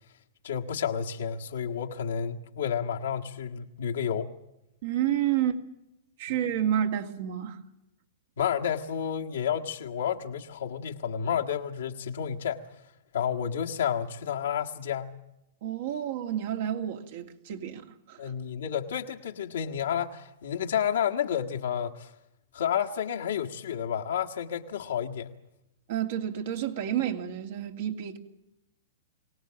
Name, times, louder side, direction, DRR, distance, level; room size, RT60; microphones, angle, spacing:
voice 1, 0.4-4.3 8.4-12.6 13.1-15.1 18.2-22.1 22.5-25.3, left 8 dB, 75° left, 1.6 m, -30 dB
voice 2, 4.8-5.6 6.2-7.6 15.6-18.3 25.9-28.2, right 10 dB, 60° right, 2.6 m, -30 dB
23.5 x 18.0 x 7.7 m
hypercardioid pair, 115°, 0 cm